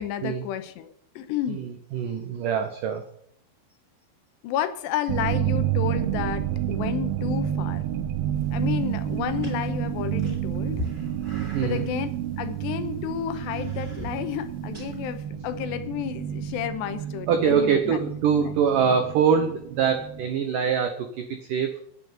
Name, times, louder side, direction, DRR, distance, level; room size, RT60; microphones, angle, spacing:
voice 1, 0.0-1.6 4.4-7.8 8.5-10.8 11.5-12.1 12.4-18.0, left 10 dB, 80° left, 10 dB, 3.0 m, -31 dB
voice 2, 1.5-3.0 11.5-11.9 17.3-21.8, right 7 dB, 90° right, 7 dB, 1.8 m, -24 dB
sound 1, 5.1-20.3, right 11 dB, 75° right, 2.6 m, -30 dB
sound 2, 8.3-15.2, left 2 dB, 10° right, 3.0 m, -42 dB
9.5 x 9.0 x 9.3 m, 0.68 s
omnidirectional pair, 5.2 m